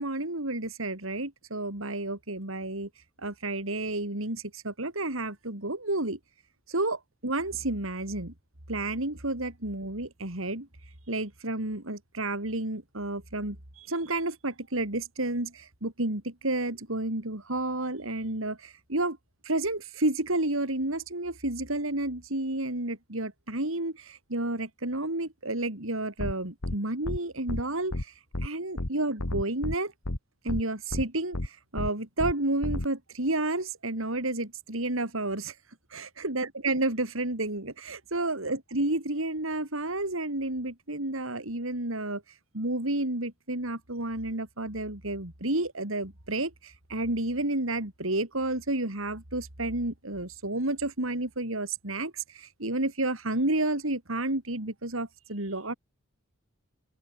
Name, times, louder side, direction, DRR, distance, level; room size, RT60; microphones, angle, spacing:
voice 1, 0.0-2.9 3.2-6.2 6.7-8.3 8.7-10.7 11.1-19.2 19.4-28.1 28.4-29.9 30.4-35.5 35.9-42.2 42.5-55.7, right 2 dB, 70° right, 4.0 m, -31 dB
sound 1, 26.2-26.3 26.6-26.8 27.0-27.2 27.5-27.6 27.9-28.0 28.3-28.5 28.8-28.9 29.2-29.8 30.0-30.2 30.5-30.6 30.9-31.0 31.3-31.5 31.8-31.9 32.2-32.3 32.6-32.9, left 1 dB, 80° left, 2.0 m, -31 dB
open air
head